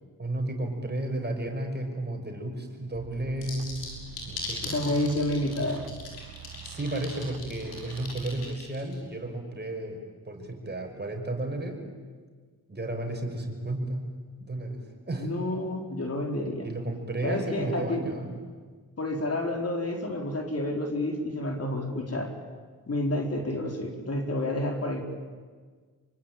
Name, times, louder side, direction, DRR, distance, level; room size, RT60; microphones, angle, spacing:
voice 1, 0.2-3.9 4.3-5.0 6.6-10.0 10.2-11.8 12.7-14.0 14.4-15.3 16.6-18.3, right 1 dB, 30° right, 3 dB, 6.1 m, -33 dB
sound 1, 2.9-8.6, right 11 dB, 80° right, 1.3 m, -45 dB
sound 2, 3.4-9.0, left 4 dB, 90° left, 6.4 m, -39 dB
voice 2, 4.6-5.9 15.1-16.7 17.2-18.0 19.0-22.3 22.9-25.0, left 1 dB, 40° left, 2 dB, 4.5 m, -29 dB
26.0 x 24.5 x 9.1 m, 1.5 s
cardioid pair, 60°, 36 cm